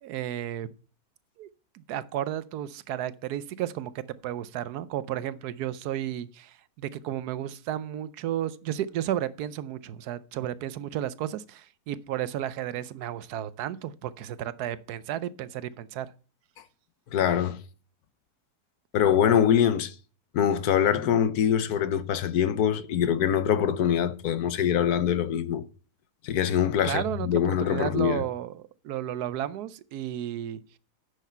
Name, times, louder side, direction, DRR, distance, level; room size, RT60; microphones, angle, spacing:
voice 1, 0.0-0.7 1.4-1.5 1.7-16.1 26.8-30.6, right 11 dB, 75° right, 1.2 m, -33 dB
voice 2, 17.1-17.6 18.9-19.9 20.3-25.6 26.2-28.2, left 9 dB, 75° left, 1.3 m, -24 dB
9.8 x 6.7 x 5.6 m
omnidirectional pair, 1.7 m